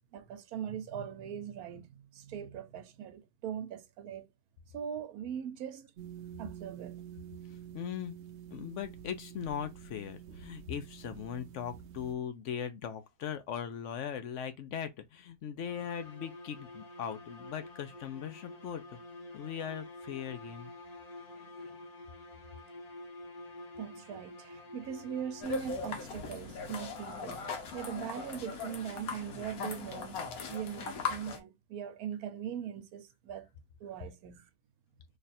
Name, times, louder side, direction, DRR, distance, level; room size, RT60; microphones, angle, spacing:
voice 1, 0.1-4.3 4.7-5.9 6.4-7.0 23.8-27.5 27.7-30.2 30.5-33.5 33.8-34.4, right 9 dB, 85° right, 1.2 m, -40 dB
sound 1, 6.0-12.1, right 9 dB, 60° right, 0.7 m, -48 dB
voice 2, 7.5-8.2 8.5-19.0 19.3-20.7, left 8 dB, 65° left, 0.9 m, -39 dB
sound 2, 15.6-25.9, left 2 dB, 35° left, 0.7 m, -48 dB
sound 3, 25.4-31.4, left 5 dB, 85° left, 1.3 m, -39 dB
3.3 x 2.4 x 4.0 m
omnidirectional pair, 1.5 m